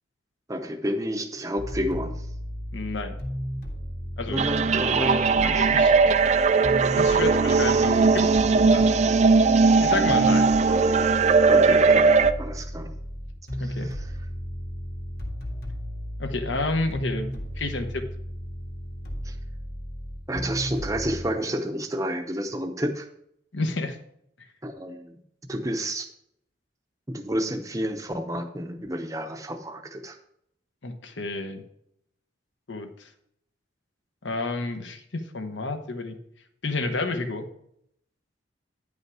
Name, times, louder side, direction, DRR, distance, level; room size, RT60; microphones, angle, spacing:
voice 1, 0.5-2.3 4.3-5.7 10.7-11.0 11.5-12.1 12.4-12.9 13.6-14.1 19.2-19.4 20.3-23.1 24.6-25.1 25.5-26.1 27.1-30.2, equal, 15° right, 5 dB, 0.7 m, -30 dB
sound 1, 1.6-21.2, equal, 50° left, 1.8 m, -34 dB
voice 2, 2.7-3.2 4.2-4.4 5.0-6.0 6.9-8.3 8.7-9.0 9.8-10.5 13.6-13.9 16.2-18.1 23.5-24.0 30.8-31.6 32.7-33.1 34.2-36.2 36.6-37.4, left 3 dB, 70° left, 7 dB, 1.0 m, -30 dB
sound 2, 4.4-12.3, right 4 dB, 35° right, 0.3 m, -19 dB
10.0 x 5.4 x 4.8 m, 0.73 s
head